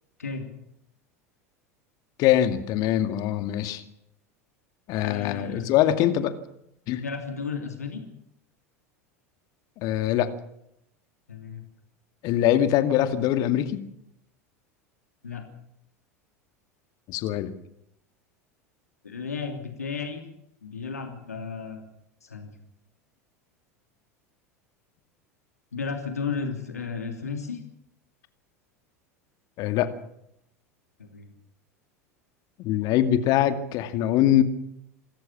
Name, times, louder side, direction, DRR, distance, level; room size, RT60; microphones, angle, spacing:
voice 1, 2.2-3.8 4.9-6.3 6.9-7.0 9.8-10.3 12.2-13.8 17.1-17.5 29.6-30.0 32.6-34.4, left 12 dB, 50° left, 10 dB, 2.3 m, -23 dB
voice 2, 5.0-5.7 7.0-8.0 11.3-11.6 15.2-15.4 19.0-20.3 20.6-21.8 22.2-22.5 25.7-27.6 31.0-31.3, left 5 dB, 85° left, 4 dB, 3.0 m, -33 dB
27.5 x 14.0 x 7.4 m, 0.78 s
figure-of-eight pair, 80°, 8 cm